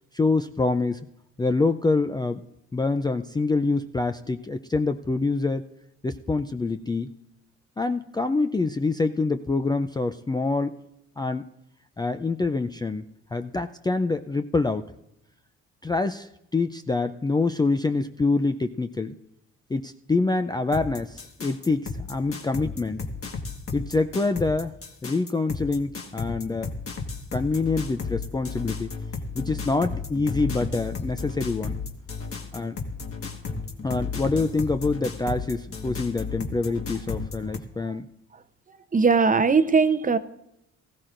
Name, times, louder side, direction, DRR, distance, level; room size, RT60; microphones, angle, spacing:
voice 1, 0.1-1.1 1.4-2.4 2.7-5.6 6.0-7.1 7.8-10.8 11.2-11.5 12.0-13.0 13.3-14.8 15.8-19.2 19.7-23.0 23.7-24.7 25.0-26.7 27.3-28.9 29.3-31.8 32.5-32.8 33.8-38.1, left 3 dB, 15° left, 8 dB, 0.4 m, -26 dB
sound 1, 20.7-37.6, left 4 dB, 45° left, 1.6 m, -34 dB
voice 2, 38.9-40.2, right 5 dB, 25° right, 11 dB, 0.7 m, -20 dB
19.0 x 14.5 x 2.5 m, 0.84 s
cardioid pair, 90°, 30 cm